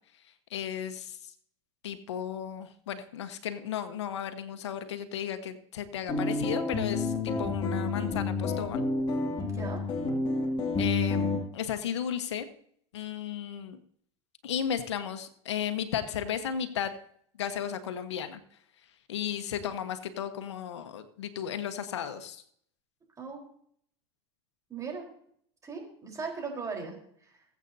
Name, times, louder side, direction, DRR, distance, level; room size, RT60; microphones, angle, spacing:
voice 1, 0.5-1.2 1.8-8.8 10.8-12.5 12.9-13.8 14.4-17.0 17.4-18.4 19.1-22.4, left 9 dB, 90° left, 9 dB, 1.2 m, -34 dB
sound 1, 6.1-11.4, left 3 dB, 35° left, 2.4 m, -29 dB
voice 2, 9.4-9.8 23.2-23.4 24.7-25.0 25.6-27.4, right 5 dB, 25° right, 0 dB, 4.1 m, -38 dB
21.5 x 8.2 x 2.7 m, 0.64 s
supercardioid pair, 110°, 14 cm